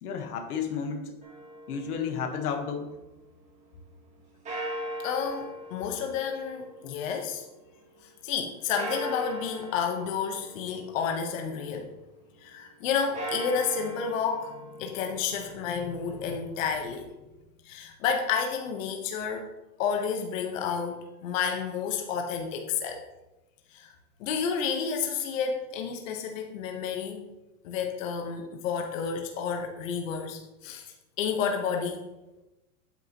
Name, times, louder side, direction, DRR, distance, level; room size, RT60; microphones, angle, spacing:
voice 1, 0.0-1.1 1.7-3.0, left 6 dB, 85° left, 5 dB, 1.4 m, -32 dB
sound 1, 1.2-3.3 4.4-7.8 8.8-11.7 13.0-17.0, equal, 15° right, 1.9 m, -40 dB
voice 2, 5.0-7.4 8.2-11.9 12.4-17.1 17.6-19.5 19.8-23.0 23.7-23.9 24.2-27.2 27.6-32.1, left 6 dB, 60° left, 3 dB, 1.1 m, -31 dB
8.7 x 8.2 x 3.0 m, 1.0 s
supercardioid pair, 160°, 44 cm